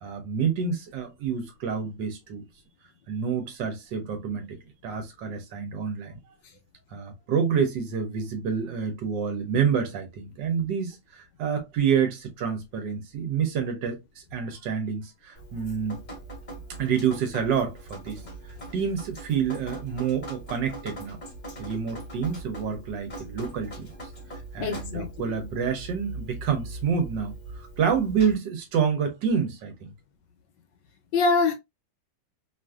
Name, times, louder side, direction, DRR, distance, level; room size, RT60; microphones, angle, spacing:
voice 1, 0.0-2.4 3.1-4.6 4.8-6.2 6.9-14.0 14.3-16.0 16.8-18.2 18.7-21.2 21.6-23.9 24.5-29.9, right 7 dB, 70° right, 1.3 m, -28 dB
Drip, 15.4-28.4, right 2 dB, 35° left, 0.7 m, -41 dB
voice 2, 24.6-25.1 31.1-31.5, left 4 dB, 75° left, 1.1 m, -23 dB
3.0 x 2.5 x 2.2 m
omnidirectional pair, 2.1 m